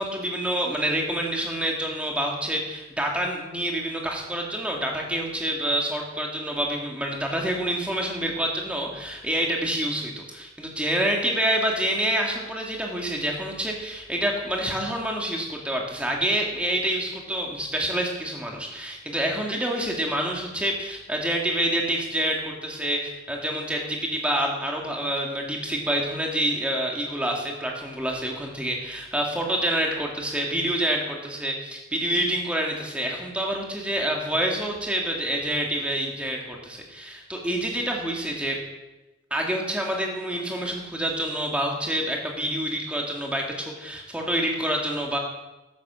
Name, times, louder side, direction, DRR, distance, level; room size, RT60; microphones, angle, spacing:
voice 1, 0.0-38.6 39.3-45.2, right 1 dB, 5° right, 0 dB, 2.4 m, -27 dB
12.5 x 11.0 x 7.6 m, 1.0 s
head